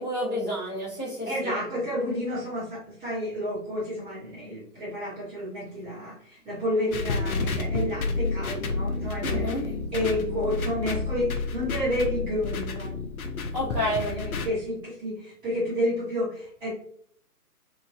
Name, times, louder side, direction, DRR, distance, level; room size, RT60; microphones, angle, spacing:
voice 1, 0.0-1.5 9.2-9.6 13.5-14.0, equal, 20° left, -11 dB, 0.4 m, -29 dB
voice 2, 1.3-13.0 13.8-16.7, equal, 10° right, -9 dB, 0.9 m, -30 dB
sound 1, 6.9-14.5, left 3 dB, 65° left, 0.6 m, -30 dB
3.0 x 2.5 x 2.4 m, 0.63 s
figure-of-eight pair, 135°, 46 cm